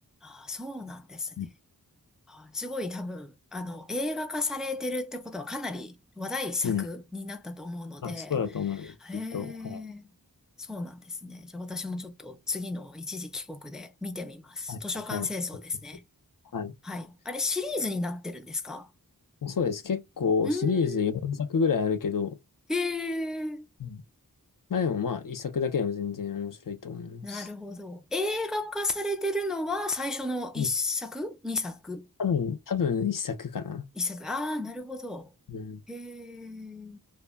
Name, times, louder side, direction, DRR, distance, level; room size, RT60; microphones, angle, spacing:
voice 1, 0.2-1.5 2.3-8.4 8.8-10.1 10.6-16.0 16.8-18.9 20.4-21.1 22.7-23.7 27.2-32.1 34.0-35.3 35.9-37.0, left 2 dB, ahead, 0.4 m, -34 dB
voice 2, 8.0-9.8 14.7-14.8 15.1-15.3 16.5-16.7 19.4-22.4 23.8-24.0 24.7-27.5 30.6-30.7 32.2-33.8 35.5-35.8, left 6 dB, 60° left, 0.5 m, -29 dB
2.2 x 2.1 x 3.4 m
wide cardioid pair, 45°, 37 cm